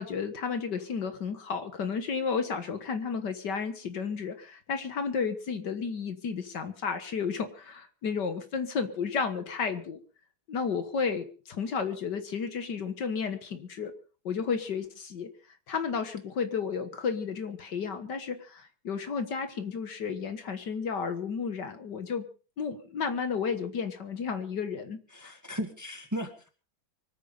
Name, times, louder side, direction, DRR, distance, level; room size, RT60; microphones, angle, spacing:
voice 1, 0.0-10.0 10.5-14.0 14.3-15.3 15.7-22.3 22.6-25.4, left 5 dB, 60° left, 9 dB, 2.0 m, -32 dB
voice 2, 25.1-26.5, equal, 10° right, 7 dB, 1.6 m, -36 dB
24.5 x 9.4 x 5.3 m, 0.38 s
omnidirectional pair, 2.2 m